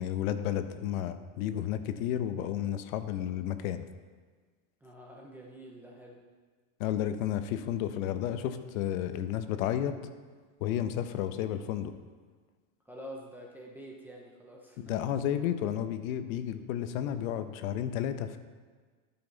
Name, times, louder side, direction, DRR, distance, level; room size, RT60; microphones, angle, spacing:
voice 1, 0.0-3.8 6.8-10.0 10.6-11.9 14.8-18.4, left 10 dB, 80° left, 10 dB, 0.8 m, -32 dB
voice 2, 4.8-6.2 12.9-14.9, equal, 5° right, -2 dB, 0.4 m, -47 dB
12.5 x 5.9 x 3.9 m, 1.5 s
cardioid pair, 170°, 41 cm